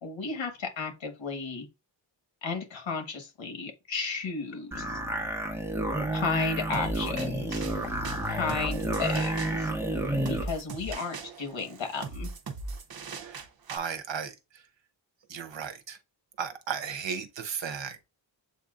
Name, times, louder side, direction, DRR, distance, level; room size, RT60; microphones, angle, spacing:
voice 1, 0.0-1.7 2.4-4.8 6.1-7.6 8.3-9.7 10.3-12.3, left 4 dB, 90° left, 1.4 m, -33 dB
sound 1, 4.7-10.5, right 1 dB, 5° right, 1.2 m, -30 dB
sound 2, 6.7-13.8, right 4 dB, 55° right, 0.8 m, -40 dB
voice 2, 13.7-14.6 15.3-16.0 16.4-18.0, right 7 dB, 75° right, 0.9 m, -35 dB
7.8 x 2.7 x 2.4 m
wide cardioid pair, 125°, 45 cm